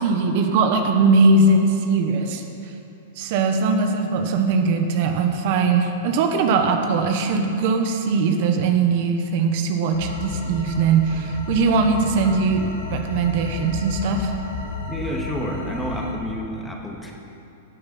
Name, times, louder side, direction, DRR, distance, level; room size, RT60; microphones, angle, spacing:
voice 1, 0.0-2.4 3.2-14.3, right 4 dB, 55° right, 5 dB, 1.3 m, -20 dB
sound 1, 9.9-16.1, left 3 dB, 70° left, 2.4 m, -32 dB
voice 2, 14.9-17.1, equal, 5° left, 0 dB, 1.9 m, -29 dB
16.0 x 8.9 x 6.1 m, 2.9 s
hypercardioid pair, 125°, 0 cm